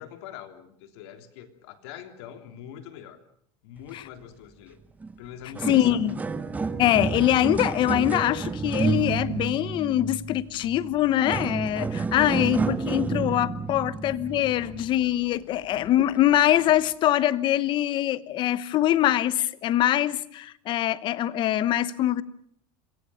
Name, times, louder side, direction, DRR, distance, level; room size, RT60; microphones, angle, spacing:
voice 1, 0.0-3.2 3.6-4.8 5.2-6.0, left 10 dB, 70° left, 3.3 m, -43 dB
sound 1, 5.0-5.1 5.4-15.1 15.8-15.9 16.7-16.8, right 4 dB, 10° right, 1.1 m, -30 dB
voice 2, 5.6-6.2 6.8-22.2, left 13 dB, 35° left, 1.0 m, -23 dB
27.0 x 22.5 x 7.1 m
supercardioid pair, 160°, 14 cm